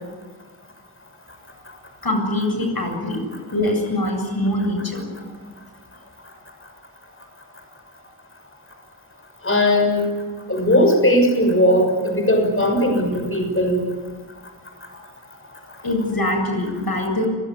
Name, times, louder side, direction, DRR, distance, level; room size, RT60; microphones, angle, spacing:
voice 1, 2.0-3.2 3.5-5.0 15.8-17.3, left 1 dB, 65° left, 3 dB, 7.9 m, -23 dB
voice 2, 9.4-10.0 10.5-13.8, left 1 dB, 35° left, 4 dB, 6.4 m, -18 dB
29.5 x 17.5 x 9.6 m, 1.4 s
wide cardioid pair, 70°, 38 cm